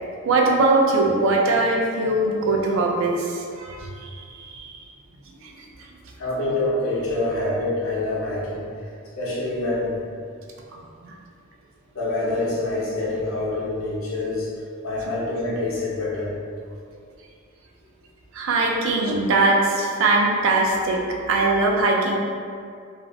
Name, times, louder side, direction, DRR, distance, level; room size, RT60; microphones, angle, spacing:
voice 1, 0.2-4.8 5.4-5.5 10.7-11.1 18.3-21.0 21.3-22.2, right 2 dB, 65° right, -1 dB, 0.4 m, -21 dB
voice 2, 6.2-8.7 9.2-10.0 11.9-14.5 14.8-16.4, left 2 dB, 70° left, -6 dB, 0.7 m, -26 dB
2.5 x 2.0 x 2.5 m, 2.3 s
head